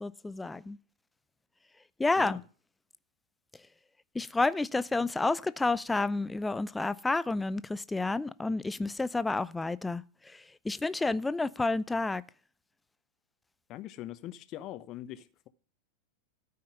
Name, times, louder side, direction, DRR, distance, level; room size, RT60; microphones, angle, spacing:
voice 1, 0.0-0.8 2.0-2.4 4.1-12.2, left 3 dB, 10° left, 0.5 m, -30 dB
voice 2, 13.7-15.5, left 13 dB, 35° left, 1.0 m, -42 dB
13.5 x 5.7 x 9.0 m
figure-of-eight pair, 90°, 0 cm